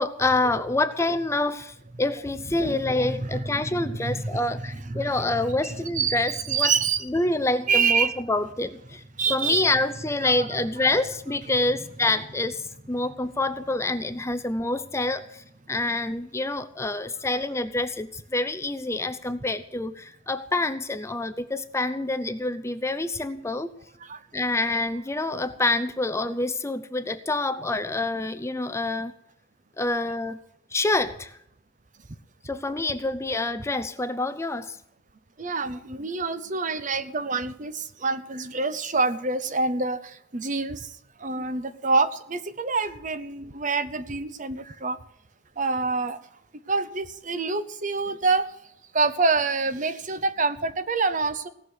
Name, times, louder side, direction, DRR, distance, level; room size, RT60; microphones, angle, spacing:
voice 1, 0.0-6.7 7.1-9.0 9.3-23.7 24.3-29.1 29.8-30.4 30.7-31.4 32.4-34.8, left 2 dB, 15° left, 11 dB, 0.5 m, -27 dB
voice 2, 2.6-7.0 7.7-8.2 9.2-9.7 10.2-10.9 24.0-24.2 35.4-40.9 41.2-45.0 45.6-46.2 46.7-48.5 48.9-51.5, right 4 dB, 40° right, 12 dB, 0.9 m, -27 dB
17.5 x 6.5 x 9.3 m, 0.75 s
head